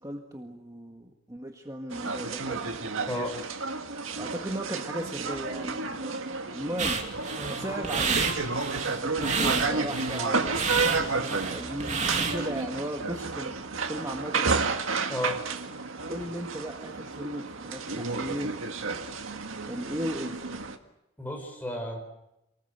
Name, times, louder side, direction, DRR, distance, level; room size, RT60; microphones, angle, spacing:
voice 1, 0.0-2.8 4.2-6.1 6.5-7.0 7.5-8.3 8.9-14.7 16.1-18.6 19.6-20.5, right 1 dB, 15° right, 2 dB, 1.8 m, -36 dB
sound 1, 1.9-20.8, right 4 dB, 90° right, 1.9 m, -31 dB
voice 2, 3.1-3.4 7.4-7.6 15.1-15.4 21.2-22.0, left 1 dB, 10° left, 1 dB, 5.7 m, -33 dB
sound 2, 6.8-12.6, right 5 dB, 35° right, 2.8 m, -30 dB
28.5 x 20.5 x 8.1 m, 0.90 s
head